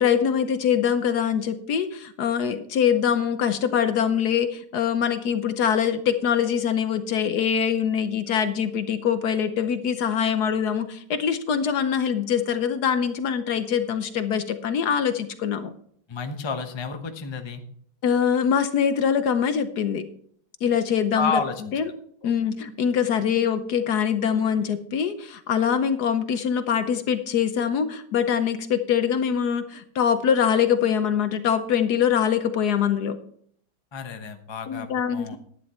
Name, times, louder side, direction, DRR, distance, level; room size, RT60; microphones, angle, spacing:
voice 1, 0.0-15.7 18.0-20.0 20.6-21.4 21.7-21.9 22.2-33.2 34.7-35.4, left 8 dB, 60° left, 10 dB, 1.2 m, -23 dB
voice 2, 16.1-17.6 21.1-21.6 22.2-22.3 33.9-35.4, left 4 dB, 30° left, 6 dB, 0.5 m, -30 dB
11.5 x 9.6 x 4.3 m, 0.63 s
omnidirectional pair, 2.2 m